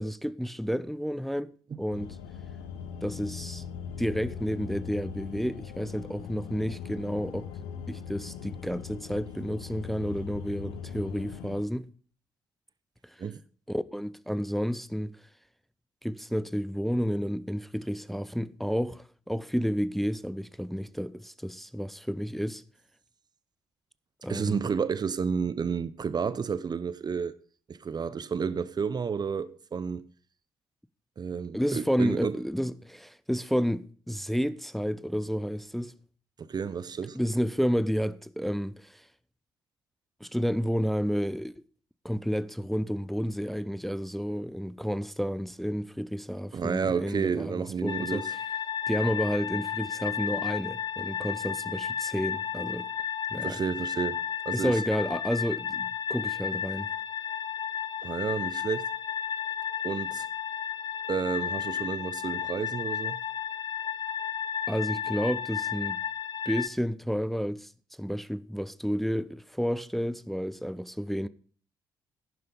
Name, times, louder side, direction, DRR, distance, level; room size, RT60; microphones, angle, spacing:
voice 1, 0.0-1.5 1.8-2.2 3.0-3.6 4.0-7.5 7.9-11.9 13.0-13.1 13.7-15.2 16.0-22.6 24.2-24.7 31.5-35.9 37.1-39.0 40.2-41.5 42.0-48.2 48.9-52.9 53.3-53.6 54.5-56.9 64.7-66.0 66.5-67.7 68.0-71.3, equal, ahead, 0.6 m, -31 dB
sound 1, 1.9-11.6, left 7 dB, 75° left, 1.0 m, -40 dB
voice 2, 24.3-27.4 27.7-30.1 31.2-32.4 36.4-37.2 46.5-48.3 53.4-54.8 58.0-58.9 59.8-60.3 61.1-63.2, right 6 dB, 40° right, 0.7 m, -31 dB
sound 2, 47.9-66.7, left 8 dB, 40° left, 0.8 m, -33 dB
11.0 x 9.3 x 5.3 m
hypercardioid pair, 45°, 11 cm